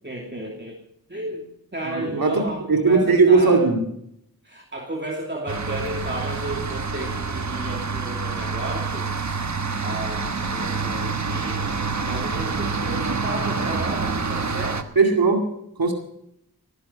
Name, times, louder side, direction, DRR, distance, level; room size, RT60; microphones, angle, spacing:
voice 1, 0.0-0.8 1.1-1.5 1.7-3.7 4.4-9.1 9.8-11.6 12.0-14.8, right 1 dB, 30° right, 0 dB, 2.7 m, -33 dB
voice 2, 1.9-2.4 2.7-3.8 15.0-15.4 15.8-15.9, right 4 dB, 80° right, 3 dB, 2.4 m, -18 dB
sound 1, 5.5-14.8, right 4 dB, 50° right, 1.3 m, -27 dB
19.0 x 10.5 x 5.6 m, 0.74 s
wide cardioid pair, 40°, 35 cm